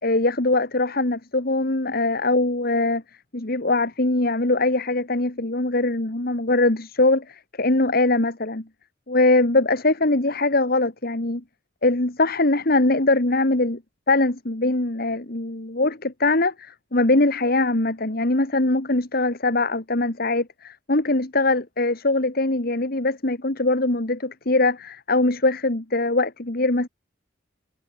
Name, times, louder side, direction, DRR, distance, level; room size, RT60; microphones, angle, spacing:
voice 1, 0.0-3.0 3.3-8.6 9.1-11.4 11.8-13.8 14.1-26.9, left 2 dB, 50° left, 2.0 m, -22 dB
head